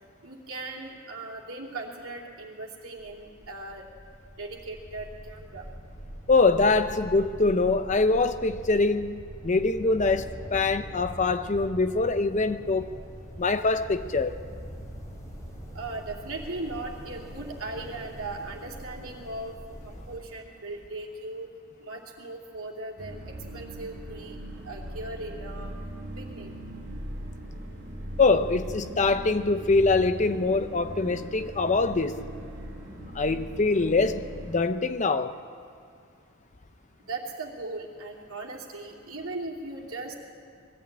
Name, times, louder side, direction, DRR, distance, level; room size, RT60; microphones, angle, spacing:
voice 1, 0.2-3.9 4.3-5.7 15.7-19.6 19.8-21.5 21.8-24.4 24.6-25.8 26.1-26.6 37.0-40.1, right 2 dB, 75° right, 2.9 m, -38 dB
sound 1, 2.9-20.2, equal, 15° left, 3.1 m, -43 dB
voice 2, 6.3-13.0 13.4-14.4 28.2-32.2 33.1-35.4, left 3 dB, 35° left, 0.6 m, -24 dB
sound 2, 23.0-34.6, right 1 dB, 50° right, 3.3 m, -40 dB
21.0 x 14.5 x 8.8 m
head